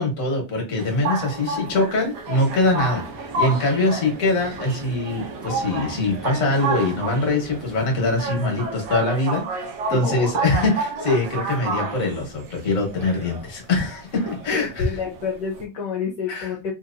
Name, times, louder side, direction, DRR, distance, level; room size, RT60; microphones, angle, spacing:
voice 1, 0.0-14.9 16.3-16.5, left 2 dB, 50° left, 1 dB, 1.5 m, -23 dB
sound 1, 0.8-15.6, right 3 dB, 70° right, 1.3 m, -30 dB
sound 2, 2.4-8.3, right 3 dB, 50° right, 1.1 m, -40 dB
voice 2, 9.6-10.3 13.1-13.3 14.1-14.3 14.5-16.7, left 6 dB, 70° left, -2 dB, 1.3 m, -30 dB
3.6 x 2.8 x 2.5 m, 0.29 s
omnidirectional pair, 2.0 m